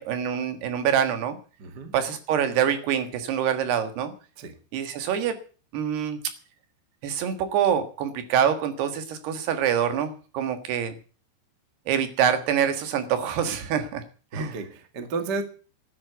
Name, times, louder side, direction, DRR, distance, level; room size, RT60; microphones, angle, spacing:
voice 1, 0.0-1.4 1.9-4.1 4.7-5.4 5.7-6.2 7.0-11.0 11.9-14.0 14.3-14.6, right 8 dB, 70° right, 9 dB, 3.5 m, -25 dB
voice 2, 1.6-1.9 4.4-4.5 14.3-15.4, right 4 dB, 45° right, 7 dB, 1.3 m, -32 dB
13.0 x 8.7 x 9.2 m, 0.38 s
omnidirectional pair, 5.1 m